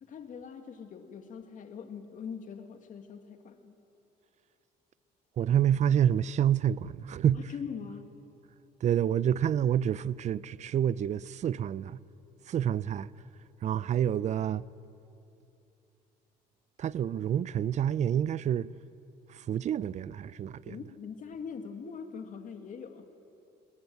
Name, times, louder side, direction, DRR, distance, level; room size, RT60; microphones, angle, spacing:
voice 1, 0.0-3.8 7.5-8.1 20.7-23.1, left 6 dB, 50° left, 2.2 m, -42 dB
voice 2, 5.4-7.4 8.8-12.0 12.5-13.1 13.6-14.7 16.8-18.7 19.3-20.8, right 9 dB, 45° right, 0.5 m, -28 dB
21.0 x 20.0 x 9.3 m
cardioid pair, 110°, 17 cm